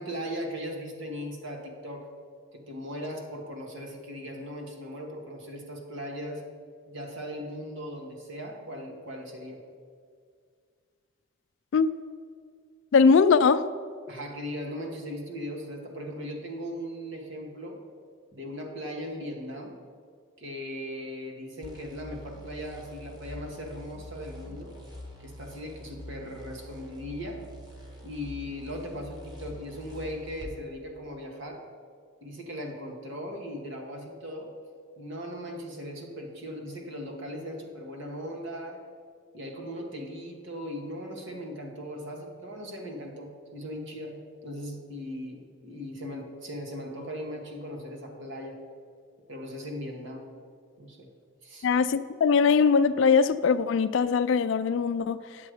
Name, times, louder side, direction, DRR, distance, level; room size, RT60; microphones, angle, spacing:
voice 1, 0.0-2.1 2.5-6.4 6.9-9.6 14.1-17.8 18.3-19.8 20.4-24.8 25.2-27.4 28.0-31.6 32.2-34.5 35.0-38.8 39.3-44.1 44.4-48.6 49.3-50.2 50.8-51.1 51.4-51.7, equal, 60° right, 1 dB, 1.4 m, -38 dB
voice 2, 12.9-13.6 51.6-55.2, left 5 dB, 65° left, 10 dB, 0.3 m, -21 dB
sound 1, 21.6-30.5, equal, 20° right, 1.2 m, -45 dB
9.5 x 7.8 x 4.9 m, 2.1 s
head